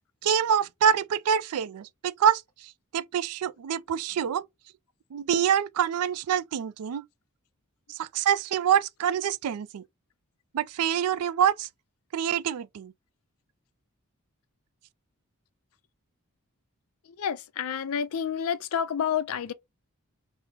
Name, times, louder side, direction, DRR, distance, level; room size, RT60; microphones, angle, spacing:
voice 1, 0.2-4.4 5.1-7.0 7.9-9.8 10.5-11.7 12.1-12.9, right 8 dB, 85° right, 0.3 m, -26 dB
voice 2, 17.1-19.5, left 8 dB, 75° left, 0.4 m, -29 dB
3.5 x 2.0 x 3.2 m
head